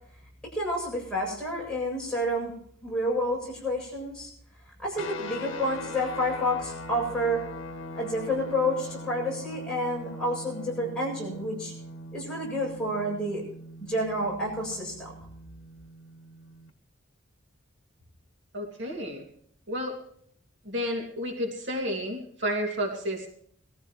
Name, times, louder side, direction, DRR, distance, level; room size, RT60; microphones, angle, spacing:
voice 1, 0.5-2.5 2.8-4.3 4.8-7.4 7.9-11.7 12.1-13.4 13.9-15.1, equal, 5° left, -4 dB, 7.6 m, -29 dB
sound 1, 5.0-16.7, left 1 dB, 65° left, 1.4 m, -41 dB
voice 2, 18.5-19.3 19.7-20.0 20.7-23.3, equal, 60° right, 0 dB, 2.5 m, -31 dB
22.0 x 15.0 x 3.2 m, 0.63 s
head